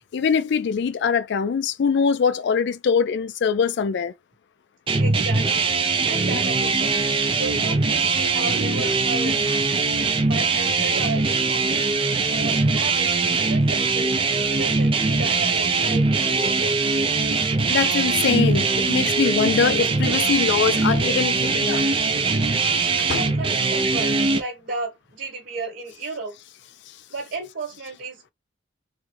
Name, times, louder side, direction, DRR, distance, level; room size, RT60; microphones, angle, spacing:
voice 1, 0.1-4.1 17.7-21.8 22.9-23.2, left 6 dB, 65° left, 0.4 m, -23 dB
sound 1, 4.9-24.4, right 4 dB, 30° right, 0.5 m, -21 dB
voice 2, 5.0-5.7 6.1-7.0 7.3-9.6 10.2-11.9 12.3-13.2 13.5-14.1 14.5-16.9 23.1-26.3 27.1-28.3, right 3 dB, 65° right, 1.2 m, -34 dB
3.5 x 2.1 x 3.1 m
head